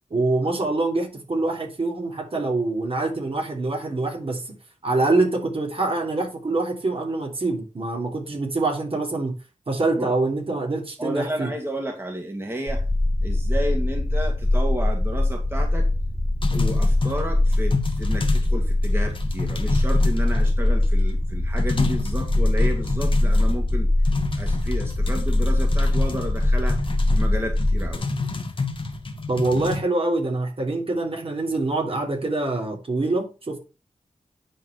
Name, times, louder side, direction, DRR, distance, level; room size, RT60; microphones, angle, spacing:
voice 1, 0.1-4.5 4.8-9.3 9.7-11.5 29.3-33.6, right 2 dB, 50° right, 3.4 m, -25 dB
voice 2, 11.0-12.8 13.2-15.9 16.5-23.9 24.3-26.8 27.1-28.0, right 1 dB, 20° right, 2.3 m, -31 dB
sound 1, 12.7-28.0, left 1 dB, 5° left, 1.4 m, -22 dB
sound 2, 16.4-18.6 18.8-20.8 21.2-21.3 21.6-23.7 24.1-29.8, left 3 dB, 45° left, 1.5 m, -29 dB
10.5 x 4.8 x 5.9 m
wide cardioid pair, 100°, 12 cm